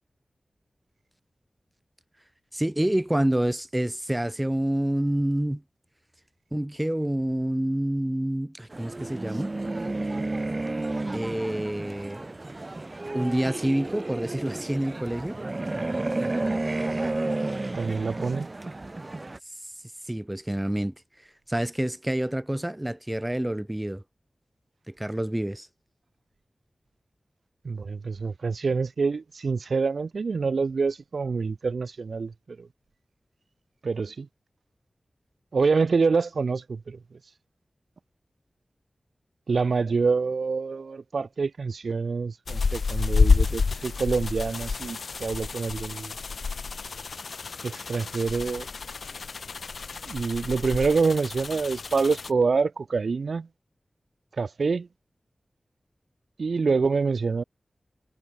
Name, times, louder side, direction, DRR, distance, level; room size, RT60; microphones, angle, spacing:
voice 1, 2.5-5.6 6.5-9.5 11.1-12.3 13.1-15.4 20.1-20.9 21.5-24.0 24.9-25.7, right 1 dB, 10° right, 1.1 m, -27 dB
sound 1, 8.7-19.4, right 2 dB, 35° right, 2.3 m, -31 dB
voice 2, 17.7-18.5 27.6-32.7 33.8-34.3 35.5-37.2 39.5-46.1 47.6-48.7 50.0-53.5 54.4-54.9 56.4-57.4, right 4 dB, 80° right, 0.8 m, -26 dB
sound 2, 42.5-52.3, left 4 dB, 80° left, 0.7 m, -28 dB
wide cardioid pair, 85°, 0 cm